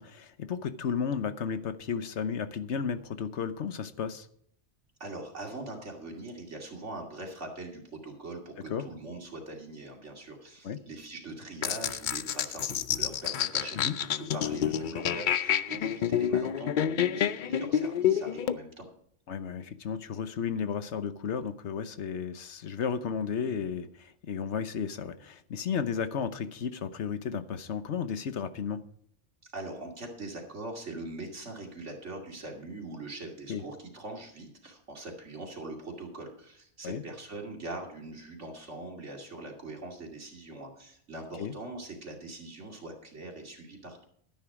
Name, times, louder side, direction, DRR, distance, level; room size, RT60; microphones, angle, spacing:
voice 1, 0.0-4.3 8.7-8.9 10.6-10.8 13.7-14.0 19.3-28.8 33.5-33.6 36.8-37.0 41.4-41.5, left 7 dB, 75° left, 11 dB, 1.2 m, -33 dB
voice 2, 5.0-18.9 29.4-44.0, right 2 dB, 80° right, 1 dB, 2.9 m, -42 dB
sound 1, 11.6-18.6, left 9 dB, 55° left, 0.6 m, -28 dB
12.5 x 10.5 x 4.9 m, 0.64 s
omnidirectional pair, 1.2 m